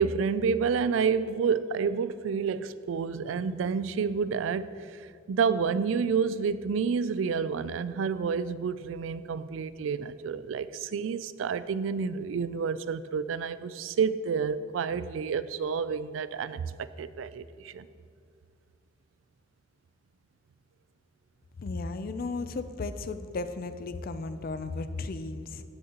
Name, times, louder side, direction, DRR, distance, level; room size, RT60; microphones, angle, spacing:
voice 1, 0.0-17.9, right 6 dB, 85° right, 0.3 m, -29 dB
voice 2, 21.6-25.6, left 3 dB, 50° left, 0.4 m, -35 dB
15.0 x 6.5 x 2.9 m
head